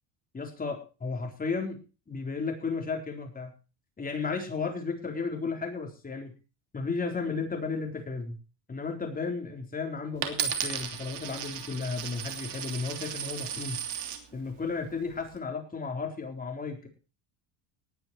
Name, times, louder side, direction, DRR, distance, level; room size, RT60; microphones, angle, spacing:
voice 1, 0.3-1.8 2.1-3.5 4.0-6.3 6.7-8.4 8.7-13.8 14.3-16.9, left 4 dB, 15° left, 3 dB, 4.1 m, -34 dB
Coin (dropping), 10.2-14.2 14.9-15.4, right 9 dB, 55° right, 3.1 m, -35 dB
19.0 x 9.8 x 4.5 m, 0.34 s
cardioid pair, 145°, 50 cm